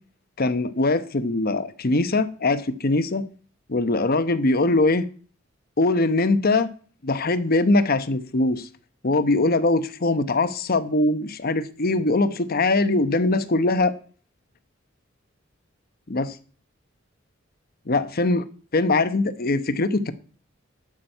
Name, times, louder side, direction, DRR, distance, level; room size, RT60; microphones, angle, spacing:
voice 1, 0.4-3.2 3.7-5.0 5.8-6.7 7.0-8.7 9.0-13.9 16.1-16.4 17.9-18.4 18.7-20.1, left 2 dB, 50° left, 0.9 m, -22 dB
11.5 x 6.1 x 7.8 m
head